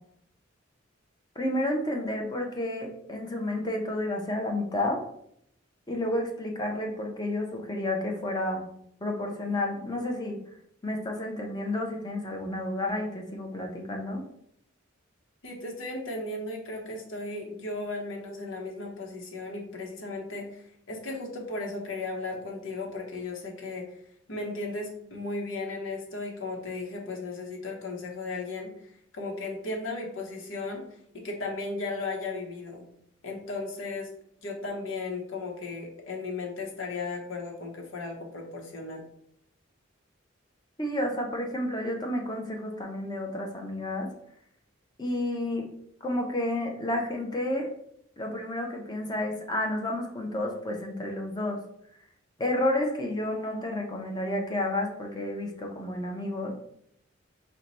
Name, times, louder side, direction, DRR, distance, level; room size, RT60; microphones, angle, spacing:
voice 1, 1.4-5.0 5.9-8.6 9.0-10.4 10.8-14.2 40.8-44.1 45.0-45.7 46.0-47.7 48.2-51.6 52.4-56.5, left 1 dB, 20° left, 2 dB, 0.6 m, -31 dB
voice 2, 15.4-23.9 24.3-30.8 31.1-32.9 33.2-34.1 34.4-39.0, left 3 dB, 80° left, 1 dB, 1.0 m, -36 dB
4.5 x 2.2 x 4.0 m, 0.71 s
head